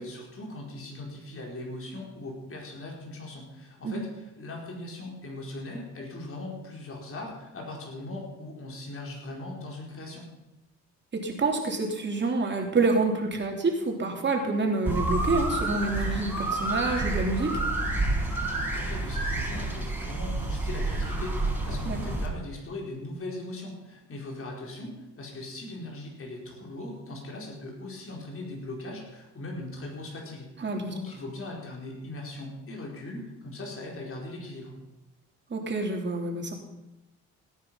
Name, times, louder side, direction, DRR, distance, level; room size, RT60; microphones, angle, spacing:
voice 1, 0.0-10.2 18.7-34.7, left 2 dB, 45° left, -1 dB, 4.6 m, -39 dB
voice 2, 11.1-17.6 21.8-22.1 30.6-30.9 35.5-36.5, right 3 dB, 35° right, 1 dB, 3.2 m, -27 dB
sound 1, 14.9-22.3, right 2 dB, 5° right, 4.2 m, -29 dB
18.0 x 9.7 x 5.8 m, 0.97 s
cardioid pair, 90°, 30 cm